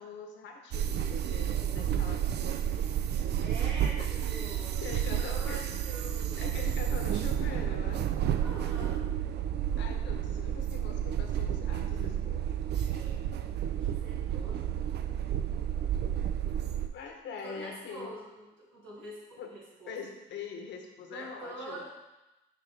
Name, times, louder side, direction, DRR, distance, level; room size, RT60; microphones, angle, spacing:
voice 1, 0.0-2.8 3.2-3.3 4.0-4.1 4.5-5.6 6.4-8.0 9.8-12.9 16.9-18.2 19.4-19.5 19.9-21.9, left 5 dB, 65° left, 3 dB, 1.1 m, -43 dB
sound 1, 0.7-16.9, right 10 dB, 60° right, 0.5 m, -31 dB
voice 2, 3.4-6.5 8.4-9.0 12.9-13.4 13.8-14.7 17.4-20.0 21.1-21.9, right 2 dB, 85° right, -6 dB, 2.2 m, -45 dB
6.7 x 4.7 x 3.4 m, 1.0 s
supercardioid pair, 60°, 20 cm